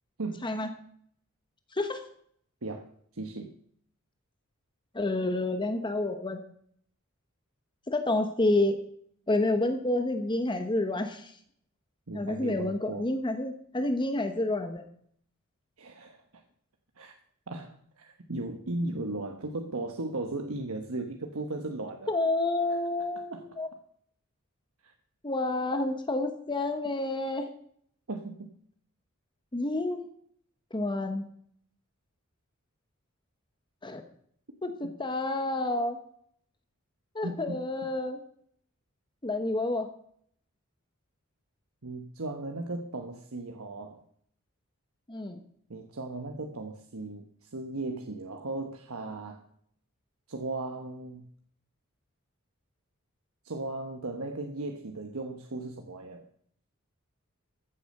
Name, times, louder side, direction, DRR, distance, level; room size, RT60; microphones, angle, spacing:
voice 1, 3.1-3.5 12.1-13.1 15.8-16.2 17.0-17.1 17.5-22.1 22.7-22.8 23.3-23.5 24.8-24.9 28.1-28.5 34.8-34.9 37.2-37.6 41.8-44.0 45.7-49.4 50.3-51.3 53.4-56.2, right 2 dB, 80° right, 4 dB, 1.2 m, -36 dB
voice 2, 4.9-6.4 7.9-8.8 9.3-11.3 12.1-14.8 22.1-23.7 25.2-27.5 29.5-30.0 30.7-31.3 33.8-34.0 34.6-36.0 37.1-38.2 39.2-39.9 45.1-45.4, left 2 dB, 20° left, 7 dB, 1.1 m, -29 dB
15.0 x 8.5 x 6.6 m, 0.64 s
head